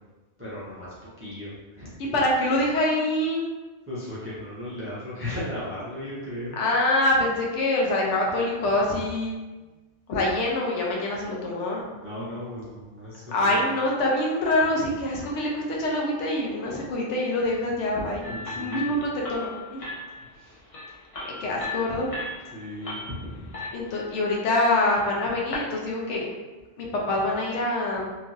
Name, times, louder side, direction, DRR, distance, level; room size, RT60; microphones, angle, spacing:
voice 1, 0.4-1.9 3.9-6.6 12.0-13.6 18.2-18.8 20.4-20.5 22.5-23.4, left 1 dB, 15° right, -9 dB, 0.4 m, -36 dB
voice 2, 2.0-3.4 6.6-9.4 10.1-11.8 13.3-18.3 18.6-19.8 21.4-22.2 23.7-26.3 26.8-28.0, left 1 dB, 75° left, -2 dB, 1.0 m, -25 dB
sound 1, 18.2-25.8, left 3 dB, 40° left, 0.5 m, -38 dB
2.9 x 2.5 x 2.5 m, 1.2 s
omnidirectional pair, 1.3 m